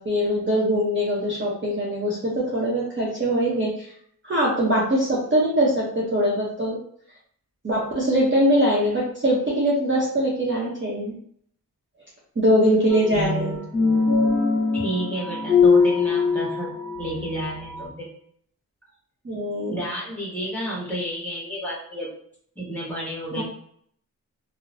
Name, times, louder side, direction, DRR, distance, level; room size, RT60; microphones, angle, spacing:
voice 1, 0.0-3.9 4.2-6.8 7.6-11.1 12.4-13.6 19.2-19.7 23.4-23.5, equal, 35° right, -6 dB, 0.8 m, -22 dB
sound 1, 12.9-17.9, left 4 dB, 25° left, 1.2 m, -22 dB
voice 2, 14.7-18.1 19.7-22.1 22.6-23.4, equal, 5° left, -6 dB, 1.2 m, -31 dB
2.9 x 2.0 x 2.6 m, 0.64 s
wide cardioid pair, 85°, 36 cm